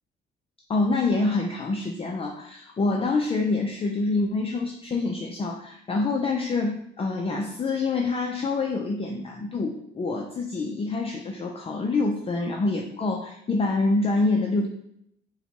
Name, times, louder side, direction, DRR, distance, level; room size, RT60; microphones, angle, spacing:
voice 1, 0.7-14.7, left 3 dB, 30° left, 1 dB, 0.5 m, -26 dB
4.3 x 2.2 x 4.0 m, 0.73 s
cardioid pair, 90°, 20 cm